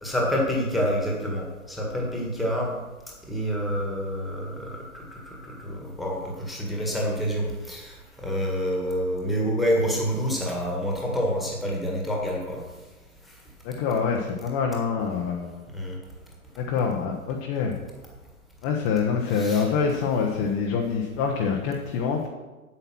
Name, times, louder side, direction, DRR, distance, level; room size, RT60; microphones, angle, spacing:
voice 1, 0.0-2.7 3.3-12.6 15.7-16.0 19.3-19.7, equal, ahead, -2 dB, 1.7 m, -28 dB
voice 2, 13.6-15.6 16.6-17.7 18.6-22.3, left 5 dB, 20° left, 0 dB, 0.9 m, -26 dB
8.3 x 7.9 x 6.0 m, 1.2 s
hypercardioid pair, 135°, 44 cm